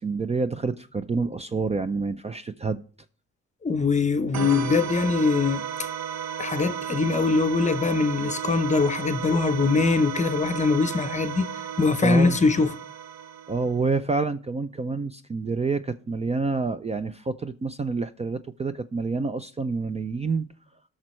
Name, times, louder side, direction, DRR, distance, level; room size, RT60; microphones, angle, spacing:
voice 1, 0.0-2.8 12.0-12.4 13.5-20.5, right 4 dB, 20° right, 0.4 m, -28 dB
voice 2, 3.6-5.9 6.4-11.5 11.8-12.8, left 4 dB, 25° left, 0.7 m, -22 dB
sound 1, 4.3-13.8, right 8 dB, 60° right, 0.8 m, -34 dB
18.0 x 6.2 x 3.1 m
cardioid pair, 90°, 30 cm